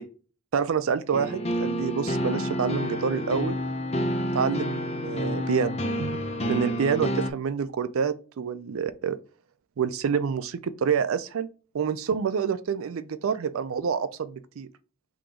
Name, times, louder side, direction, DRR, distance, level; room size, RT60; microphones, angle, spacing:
voice 1, 0.5-3.6 4.3-6.2 6.5-9.2 9.8-11.5 11.7-14.7, right 6 dB, 80° right, 0.4 m, -27 dB
sound 1, 1.1-7.3, equal, 30° left, 0.5 m, -29 dB
3.8 x 2.8 x 4.8 m
head